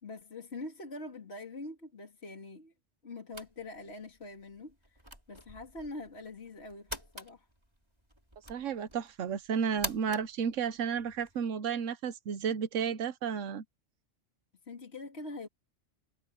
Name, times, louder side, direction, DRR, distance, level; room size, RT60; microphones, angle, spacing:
voice 1, 0.0-2.7 3.0-5.0 5.3-7.5 14.6-15.5, left 2 dB, 60° left, 2.9 m, -44 dB
sound 1, 3.3-11.4, equal, 20° right, 6.0 m, -46 dB
voice 2, 8.5-13.6, right 7 dB, 90° right, 1.2 m, -32 dB
omnidirectional pair, 1.2 m